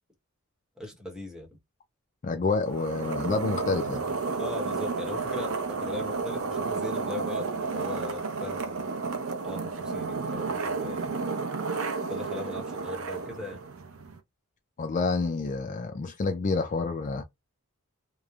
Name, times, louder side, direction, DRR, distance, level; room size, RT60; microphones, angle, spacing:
voice 1, 0.8-1.5 4.4-8.9 9.4-11.3 12.1-13.6, left 2 dB, 5° right, 1.0 m, -39 dB
voice 2, 2.2-4.0 14.8-17.2, left 3 dB, 35° left, 0.4 m, -28 dB
sound 1, 2.6-14.2, right 4 dB, 80° right, 0.6 m, -32 dB
3.0 x 2.0 x 2.3 m
head